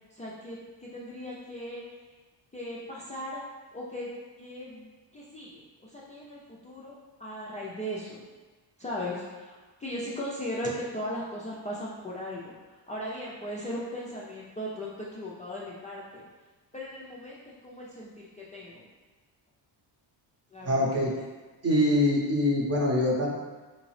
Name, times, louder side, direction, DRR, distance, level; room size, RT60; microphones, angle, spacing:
voice 1, 0.1-1.8 2.5-3.4 3.7-4.1 4.4-6.9 7.2-8.2 8.8-12.5 12.9-16.2 16.7-18.8 20.5-20.9, equal, 20° left, -6 dB, 0.3 m, -38 dB
voice 2, 20.6-21.1 21.6-23.3, left 1 dB, 35° right, -2 dB, 0.7 m, -24 dB
3.9 x 2.8 x 3.1 m, 1.3 s
cardioid pair, 125°, 46 cm